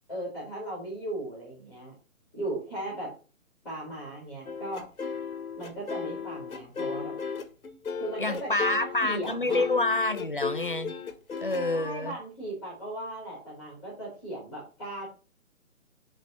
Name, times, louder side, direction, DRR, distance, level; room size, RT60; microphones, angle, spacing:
voice 1, 0.1-1.9 2.3-3.1 3.6-4.9 5.6-7.1 8.0-9.7 11.7-15.1, right 1 dB, ahead, 1.2 m, -37 dB
sound 1, 4.5-11.9, left 6 dB, 90° left, 1.6 m, -35 dB
voice 2, 8.2-11.0 11.4-12.1, left 2 dB, 40° left, 0.5 m, -28 dB
8.3 x 3.2 x 6.1 m
hypercardioid pair, 175°, 42 cm